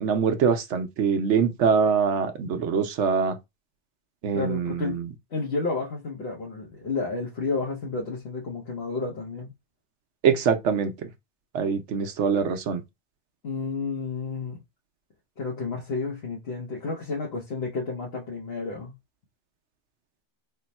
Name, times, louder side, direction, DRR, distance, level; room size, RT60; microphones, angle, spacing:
voice 1, 0.0-3.4 4.2-5.1 10.2-10.9 11.5-12.8, right 6 dB, 80° right, 1.0 m, -24 dB
voice 2, 4.3-5.0 5.3-9.5 13.4-14.6 15.4-18.9, left 4 dB, 60° left, 1.1 m, -31 dB
3.4 x 2.2 x 4.1 m
omnidirectional pair, 1.2 m